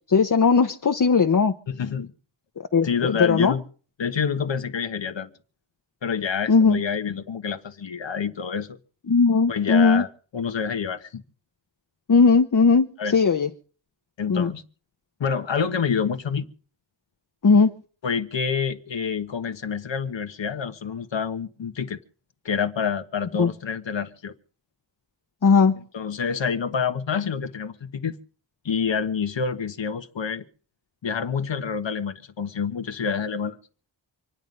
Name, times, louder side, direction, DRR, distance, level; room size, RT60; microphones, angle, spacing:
voice 1, 0.1-1.5 2.7-3.5 6.5-6.8 9.1-10.0 12.1-12.9 13.1-13.5 14.3-14.5 17.4-17.7 23.4-23.5 25.4-25.8, left 5 dB, 45° left, 1.0 m, -18 dB
voice 2, 1.7-2.1 2.8-3.6 4.0-5.3 6.0-8.8 9.5-11.2 13.0-13.2 14.2-14.6 15.2-16.4 18.0-22.0 22.4-24.3 25.8-28.2 28.6-30.4 31.0-33.6, left 6 dB, 75° left, 1.4 m, -27 dB
26.0 x 9.3 x 5.4 m
wide cardioid pair, 80°, 45 cm